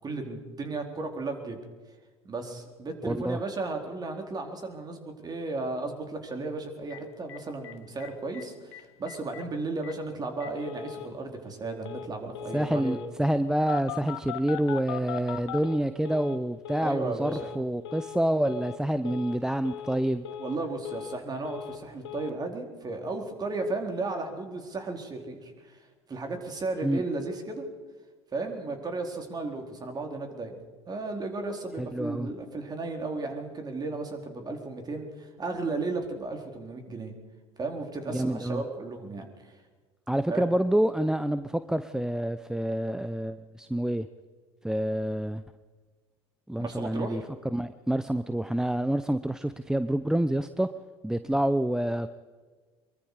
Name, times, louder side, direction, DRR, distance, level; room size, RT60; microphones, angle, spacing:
voice 1, 0.0-1.6 2.2-13.0 16.8-17.5 20.4-27.7 28.3-37.1 37.6-39.6 40.3-40.4 46.6-47.3, right 3 dB, 30° right, 4 dB, 4.2 m, -34 dB
voice 2, 3.0-3.4 12.5-20.2 26.8-27.0 31.8-32.3 38.1-38.6 40.1-44.1 44.6-45.4 46.5-47.2 47.5-50.7 51.0-52.1, right 1 dB, 5° right, 12 dB, 0.8 m, -27 dB
Telephone, 6.9-7.0 7.3-7.4 7.6-7.7 8.0-8.4 8.7-8.8 9.1-9.4 9.8-9.9 10.4-11.1 11.8-12.1 12.3-13.1 13.7-16.4 16.6-17.0 17.2-17.6 17.8-18.2 18.4-18.8 19.0-19.4 19.6-20.0 20.2-21.2 21.4-21.8 22.0-22.3, left 10 dB, 70° left, 1.4 m, -39 dB
24.0 x 23.0 x 5.0 m, 1.4 s
figure-of-eight pair, 65°, 14 cm